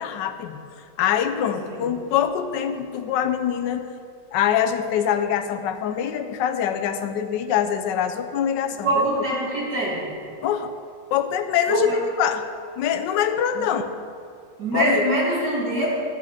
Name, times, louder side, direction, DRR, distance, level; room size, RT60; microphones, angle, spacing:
voice 1, 0.0-3.9 4.3-8.9 10.4-10.8 11.1-12.4 12.8-13.9 14.7-15.0, left 9 dB, 70° left, 7 dB, 1.2 m, -24 dB
voice 2, 8.8-10.1 11.7-12.0 13.5-13.6 14.6-15.9, right 1 dB, 55° right, -5 dB, 3.1 m, -24 dB
11.0 x 8.2 x 4.9 m, 2.3 s
omnidirectional pair, 2.2 m